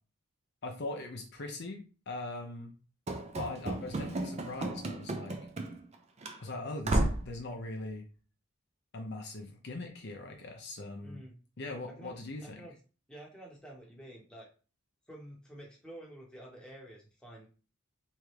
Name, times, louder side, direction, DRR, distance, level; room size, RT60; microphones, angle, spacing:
voice 1, 0.6-2.7 3.4-5.4 6.4-8.1 8.9-11.2 11.6-12.6, left 2 dB, 50° left, 3 dB, 0.6 m, -41 dB
Run / Slam, 3.1-6.0 6.2-6.4 6.8-7.3, right 2 dB, 30° right, 0.4 m, -33 dB
voice 2, 11.0-11.3 11.9-12.8 13.1-14.5 15.1-17.5, right 1 dB, 5° left, -3 dB, 0.9 m, -50 dB
3.5 x 3.1 x 3.2 m, 0.37 s
head